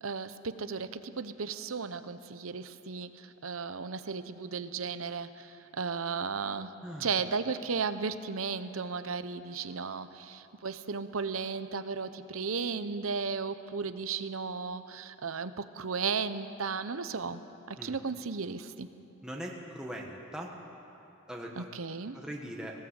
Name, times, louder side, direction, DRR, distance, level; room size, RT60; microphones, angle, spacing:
voice 1, 0.0-6.7 7.0-17.4 17.7-18.9 21.6-22.2, right 5 dB, 90° right, 11 dB, 0.9 m, -35 dB
voice 2, 6.8-7.2 17.8-18.0 19.2-20.5 21.3-21.7 22.1-22.9, equal, 5° right, -1 dB, 1.4 m, -41 dB
18.5 x 17.5 x 8.1 m, 2.9 s
head